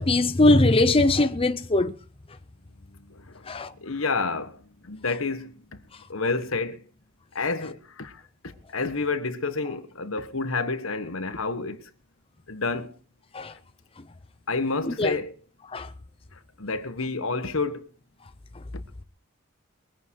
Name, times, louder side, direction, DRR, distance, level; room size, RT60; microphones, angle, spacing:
voice 1, 0.0-1.9 3.5-3.7 13.3-13.5 15.0-15.1 15.7-15.9, left 2 dB, 25° left, 0.7 m, -20 dB
voice 2, 3.1-3.5 3.8-5.6 6.1-6.8 7.3-11.8 12.5-12.9 14.5-15.3 16.6-17.9, left 3 dB, 75° left, 1.5 m, -29 dB
22.5 x 9.3 x 4.7 m
head